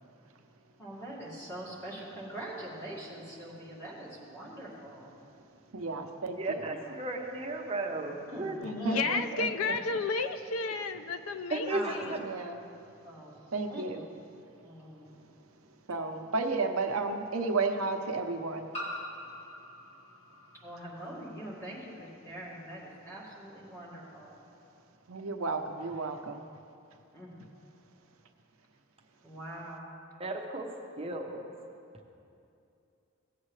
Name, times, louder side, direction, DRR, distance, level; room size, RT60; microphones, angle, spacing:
voice 1, 0.8-5.2 8.3-9.1 11.7-12.0 13.0-13.8 14.6-15.1 20.6-24.4 27.1-27.3 29.2-30.0, right 1 dB, 10° left, 2.1 m, -43 dB
voice 2, 5.7-6.8 8.6-9.7 12.2-12.6 13.5-14.1 15.9-18.7 25.1-26.4, right 3 dB, 80° right, 0.7 m, -33 dB
voice 3, 6.4-8.6 11.5-12.2 30.2-30.7 31.0-31.5, right 2 dB, 30° right, 0.9 m, -34 dB
voice 4, 8.6-12.1, left 4 dB, 85° left, 0.5 m, -32 dB
sound 1, 14.8-14.9 16.5-16.6 18.7-21.2, left 1 dB, 30° left, 2.7 m, -43 dB
17.0 x 7.4 x 3.2 m
head